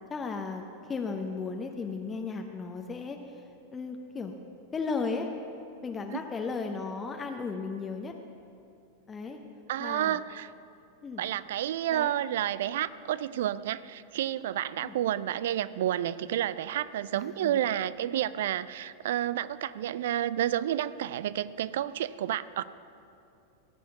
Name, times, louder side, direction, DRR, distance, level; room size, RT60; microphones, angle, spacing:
voice 1, 0.1-0.6 0.9-3.4 3.7-4.3 4.7-5.3 5.8-8.1 9.1-9.4 9.8-10.2 11.0-11.3 11.9-12.1 14.8-15.0 17.1-17.6, left 4 dB, 20° left, 4 dB, 0.7 m, -35 dB
voice 2, 9.7-10.5 11.2-22.6, right 11 dB, 55° right, 17 dB, 0.3 m, -30 dB
16.5 x 6.1 x 6.8 m, 2.6 s
figure-of-eight pair, 90°, 0 cm